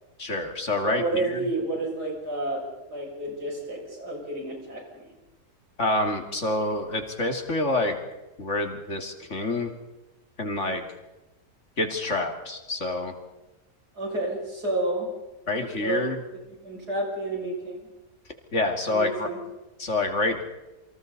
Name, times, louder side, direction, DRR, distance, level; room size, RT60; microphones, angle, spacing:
voice 1, 0.2-1.4 5.8-8.0 8.4-9.7 10.4-10.8 11.8-13.1 15.5-16.2 18.5-19.3 19.8-20.4, left 2 dB, 45° left, 5 dB, 2.8 m, -27 dB
voice 2, 0.8-5.1 14.0-15.1 15.6-16.1 16.6-17.9 18.9-19.4, right 2 dB, 80° right, -1 dB, 7.2 m, -30 dB
28.5 x 25.0 x 4.1 m, 1.0 s
omnidirectional pair, 1.7 m